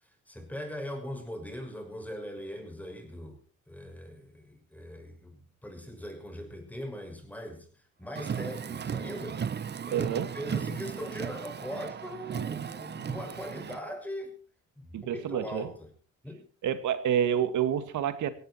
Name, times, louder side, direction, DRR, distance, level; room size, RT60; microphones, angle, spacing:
voice 1, 0.3-3.4 3.7-7.7 8.0-10.1 10.3-14.3 14.8-15.9 16.2-16.5, equal, 5° left, 5 dB, 6.2 m, -40 dB
Car, 8.1-13.8, right 7 dB, 35° right, 0.7 m, -35 dB
voice 2, 9.9-10.3 14.9-15.7 16.6-18.3, right 9 dB, 75° right, 12 dB, 2.1 m, -28 dB
17.5 x 16.0 x 4.4 m, 0.37 s
cardioid pair, 90°, 30 cm